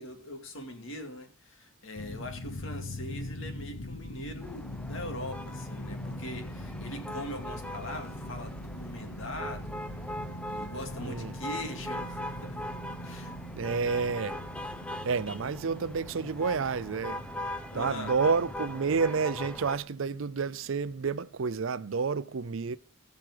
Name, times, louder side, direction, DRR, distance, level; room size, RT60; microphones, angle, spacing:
voice 1, 0.0-9.8 10.5-12.6 13.0-13.4 17.7-18.1, left 1 dB, 65° left, 2.3 m, -41 dB
sound 1, 2.0-21.1, left 1 dB, 85° left, 1.2 m, -42 dB
sound 2, 4.4-19.8, left 1 dB, 5° left, 0.7 m, -41 dB
voice 2, 11.0-11.3 13.6-14.4 15.0-17.2 17.7-22.8, right 5 dB, 70° right, 0.5 m, -30 dB
18.5 x 6.4 x 4.9 m
head